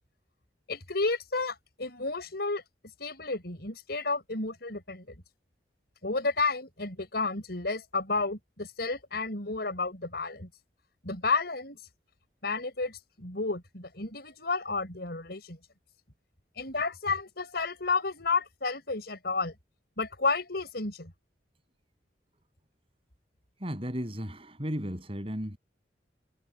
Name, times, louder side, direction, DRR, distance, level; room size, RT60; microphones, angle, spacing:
voice 1, 0.7-2.6 3.0-5.1 6.0-10.5 11.0-11.8 12.4-15.6 16.6-19.5 20.0-21.1, left 3 dB, 60° left, 6.7 m, -31 dB
voice 2, 23.6-25.6, equal, 30° right, 7.8 m, -34 dB
head